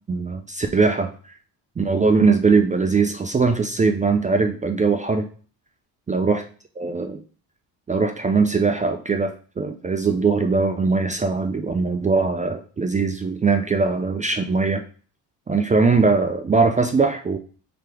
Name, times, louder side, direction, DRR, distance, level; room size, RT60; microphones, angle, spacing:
voice 1, 0.1-1.3 1.8-5.3 6.1-6.4 6.8-7.2 7.9-14.8 15.5-17.4, right 4 dB, 20° right, 6 dB, 0.3 m, -21 dB
3.3 x 2.9 x 4.7 m, 0.41 s
cardioid pair, 85°, 43 cm